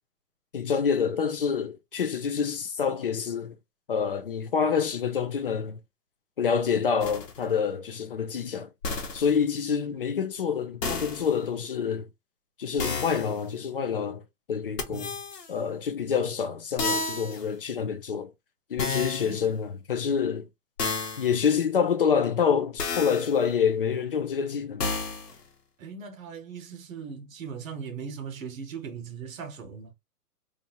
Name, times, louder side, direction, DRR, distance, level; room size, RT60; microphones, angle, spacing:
voice 1, 0.5-3.6 3.9-5.8 6.4-8.7 9.1-12.1 12.6-14.2 14.5-15.1 15.5-18.3 18.7-20.5 21.2-24.9, left 6 dB, 40° left, 0.4 m, -27 dB
sound 1, 7.0-7.4 8.8-9.4 10.8-11.3 12.8-13.4 14.8-15.5 16.8-17.5 18.8-19.4 20.8-21.4 22.8-23.4 24.8-25.4, left 3 dB, 80° left, 1.1 m, -31 dB
voice 2, 14.9-15.2 19.2-19.6 25.8-29.9, right 6 dB, 55° right, 1.1 m, -39 dB
2.8 x 2.4 x 2.8 m
hypercardioid pair, 145°, 47 cm